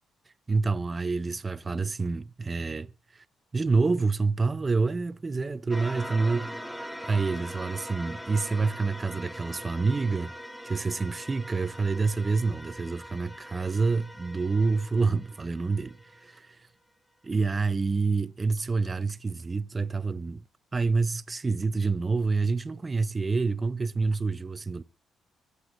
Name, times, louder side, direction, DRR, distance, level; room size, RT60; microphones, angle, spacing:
voice 1, 0.5-3.2 3.5-6.6 7.0-10.3 10.6-16.6 17.2-20.4 20.7-24.8, right 4 dB, 25° right, 0.6 m, -27 dB
sound 1, 5.7-16.4, equal, ahead, 1.1 m, -42 dB
24.0 x 8.2 x 3.0 m
cardioid pair, 90°, 0 cm